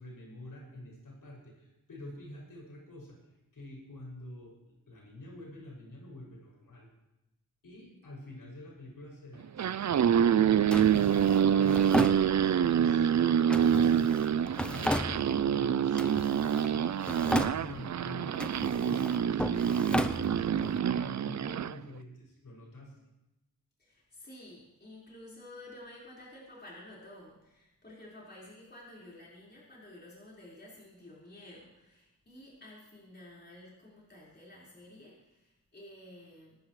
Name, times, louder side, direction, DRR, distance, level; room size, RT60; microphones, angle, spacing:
voice 1, 0.0-3.2 3.5-6.9 7.6-14.4 14.6-17.0 17.6-20.6 20.9-23.0, left 1 dB, 75° left, -3 dB, 6.6 m, -47 dB
sound 1, 9.4-21.8, right 9 dB, 55° right, 0.5 m, -26 dB
Drawer open or close, 10.7-12.8 13.5-15.6 15.9-16.7 17.0-18.0 18.3-20.8, equal, 5° left, 0.6 m, -35 dB
voice 2, 23.8-36.6, left 1 dB, 30° left, -6 dB, 4.9 m, -51 dB
26.0 x 12.5 x 3.2 m, 0.91 s
wide cardioid pair, 125°, 34 cm